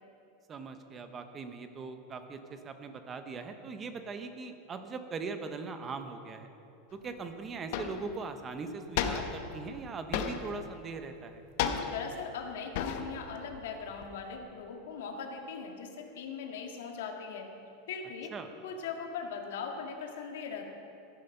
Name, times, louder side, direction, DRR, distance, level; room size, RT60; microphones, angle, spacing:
voice 1, 0.5-6.5 6.9-11.4 18.3-18.5, right 4 dB, 15° right, 8 dB, 0.8 m, -40 dB
sound 1, 7.0-7.1 7.7-8.1 9.0-9.5 10.1-10.6 11.6-12.2 12.7-13.3 13.5-14.4, left 7 dB, 50° left, 1.0 m, -33 dB
voice 2, 11.9-17.5 17.9-18.3 18.6-20.7, left 6 dB, 80° left, 2 dB, 2.0 m, -40 dB
14.5 x 11.5 x 5.4 m, 2.7 s
supercardioid pair, 175°, 0 cm